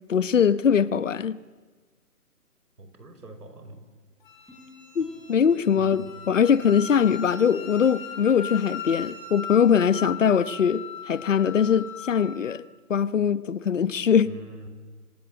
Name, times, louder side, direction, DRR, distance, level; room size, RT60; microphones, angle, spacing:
voice 1, 0.1-1.4 4.9-12.6 12.9-14.3, left 7 dB, 55° left, 1.1 m, -22 dB
voice 2, 2.8-3.8 5.8-6.1 14.2-14.7, right 1 dB, 90° right, 5.9 m, -44 dB
Wind instrument woodwind instrument, 4.2-12.4, left 7 dB, 30° left, 5.7 m, -38 dB
sound 1, 4.5-7.8 8.2-8.3, left 2 dB, ahead, 4.3 m, -53 dB
29.0 x 26.0 x 7.8 m
hypercardioid pair, 165°, 45 cm